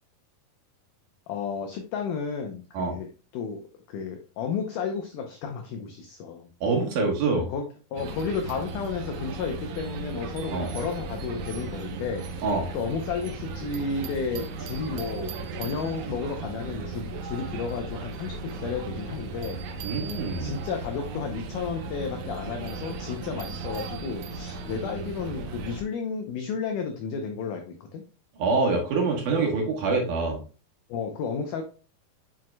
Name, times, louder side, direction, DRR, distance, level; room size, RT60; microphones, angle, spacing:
voice 1, 1.3-3.1 3.3-3.6 3.9-6.5 7.3-12.5 12.7-19.6 20.4-28.0 29.4-29.6 30.9-31.6, left 5 dB, 85° left, 4 dB, 1.8 m, -32 dB
voice 2, 6.6-7.5 10.5-10.7 12.4-12.7 19.8-20.6 28.4-30.4, right 4 dB, 65° right, 0 dB, 2.4 m, -25 dB
sound 1, 8.0-25.8, right 4 dB, 80° right, 1.7 m, -36 dB
7.5 x 5.8 x 2.2 m, 0.35 s
omnidirectional pair, 4.5 m